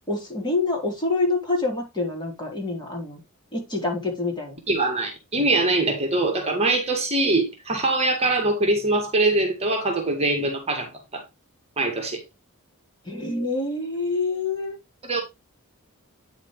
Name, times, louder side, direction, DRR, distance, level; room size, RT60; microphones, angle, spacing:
voice 1, 0.1-3.2 3.5-4.6 13.1-14.8, left 3 dB, 20° left, 3.7 m, -26 dB
voice 2, 4.7-11.2 11.8-12.2 15.0-15.2, right 2 dB, 30° right, 1.9 m, -23 dB
9.1 x 6.3 x 3.2 m
head